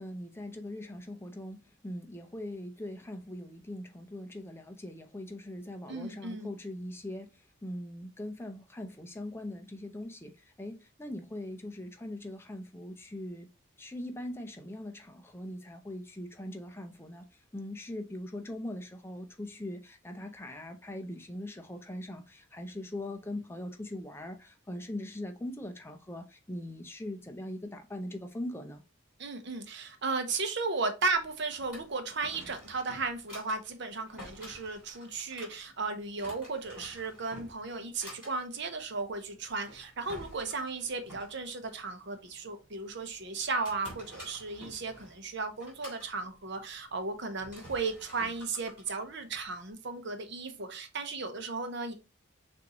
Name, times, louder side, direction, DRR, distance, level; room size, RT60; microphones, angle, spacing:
voice 1, 0.0-13.5 13.8-28.8, left 1 dB, 10° left, 0.6 m, -41 dB
voice 2, 5.9-6.5 29.2-51.9, right 4 dB, 55° right, 0.8 m, -35 dB
Drawer open or close, 31.2-49.7, left 1 dB, 5° right, 2.7 m, -51 dB
6.3 x 2.6 x 3.0 m
head